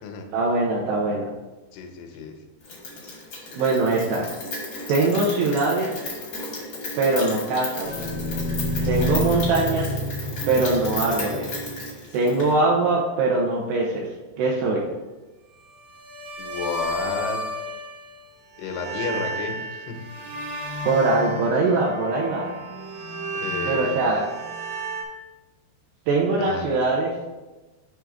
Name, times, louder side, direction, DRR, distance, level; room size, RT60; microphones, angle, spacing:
voice 1, 0.3-1.3 3.5-4.3 4.9-6.0 7.0-7.9 8.9-10.0 10.5-11.5 12.1-14.1 14.4-14.9 20.8-22.5 23.7-24.3 26.1-27.1, right 3 dB, 80° right, -3 dB, 2.5 m, -22 dB
voice 2, 1.7-2.4 16.4-17.4 18.6-20.0 23.3-23.9 26.4-26.6, left 4 dB, 85° left, 4 dB, 3.3 m, -31 dB
Rain, 2.6-12.5, left 2 dB, 70° left, 1.2 m, -34 dB
sound 1, 7.8-12.0 15.9-18.2 18.5-25.0, equal, 60° right, 1.9 m, -31 dB
7.6 x 3.5 x 4.8 m, 1.1 s
omnidirectional pair, 5.5 m